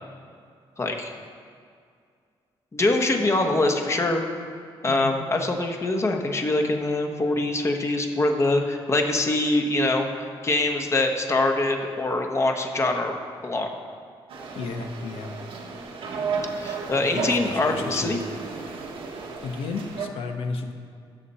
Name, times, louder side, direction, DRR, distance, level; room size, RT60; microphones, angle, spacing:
voice 1, 0.8-1.1 2.7-4.2 4.8-13.1 13.4-13.7 16.6-18.2, left 2 dB, 30° left, 3 dB, 1.2 m, -24 dB
voice 2, 4.9-5.2 14.5-15.3 17.0-18.2 19.4-20.7, left 4 dB, 80° left, 5 dB, 1.0 m, -33 dB
sound 1, 14.3-20.1, right 4 dB, 70° right, 1.3 m, -33 dB
14.5 x 6.7 x 4.3 m, 2.2 s
cardioid pair, 105°, 10 cm